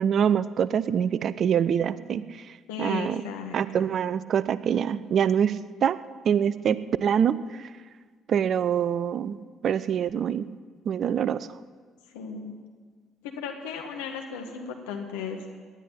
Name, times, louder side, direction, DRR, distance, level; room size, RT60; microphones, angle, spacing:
voice 1, 0.0-2.2 2.8-3.2 3.5-6.0 6.2-7.7 8.3-10.5 10.9-11.5, right 8 dB, 50° right, 17 dB, 0.5 m, -25 dB
voice 2, 2.7-3.8 12.1-12.5 13.2-15.6, left 5 dB, 75° left, 3 dB, 1.7 m, -35 dB
18.0 x 11.5 x 5.9 m, 1.5 s
figure-of-eight pair, 45°, 0 cm